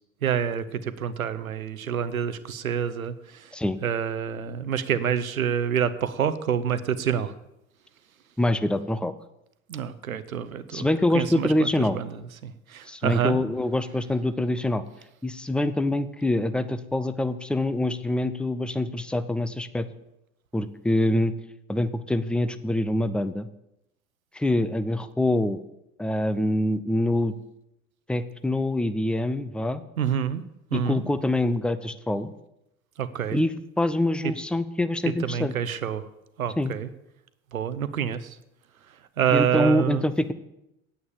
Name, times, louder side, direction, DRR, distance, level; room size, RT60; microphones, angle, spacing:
voice 1, 0.2-3.5 3.8-7.3 9.7-10.9 11.1-13.4 30.0-30.4 30.7-31.0 33.0-33.4 35.2-36.1 36.4-36.9 37.5-38.4 39.2-40.1, right 8 dB, 85° right, 14 dB, 0.9 m, -27 dB
voice 2, 8.4-9.1 10.7-12.0 12.9-14.8 15.2-19.9 20.5-21.3 21.7-23.5 24.3-25.6 26.0-27.3 28.1-29.8 30.7-32.3 33.3-33.5 33.8-35.5 36.6-36.7 39.3-40.3, left 1 dB, ahead, 12 dB, 0.6 m, -25 dB
9.4 x 8.7 x 7.3 m, 0.85 s
figure-of-eight pair, 75°, 41 cm